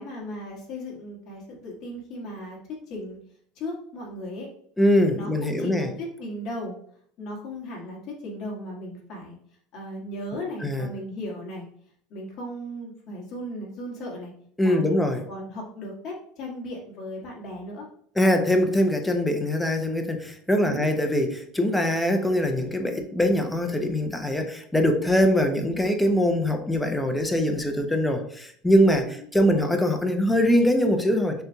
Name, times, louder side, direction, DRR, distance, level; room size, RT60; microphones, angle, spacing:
voice 1, 0.0-2.6 2.9-3.2 3.5-4.5 5.2-6.7 7.2-9.4 9.7-11.7 12.1-14.3 14.6-17.9 20.6-20.9 29.1-29.7, left 1 dB, 45° left, -3 dB, 1.7 m, -36 dB
voice 2, 4.8-5.9 10.6-10.9 14.6-15.2 18.2-31.4, equal, 5° left, 5 dB, 0.5 m, -22 dB
6.4 x 2.8 x 2.2 m, 0.62 s
supercardioid pair, 145°, 0 cm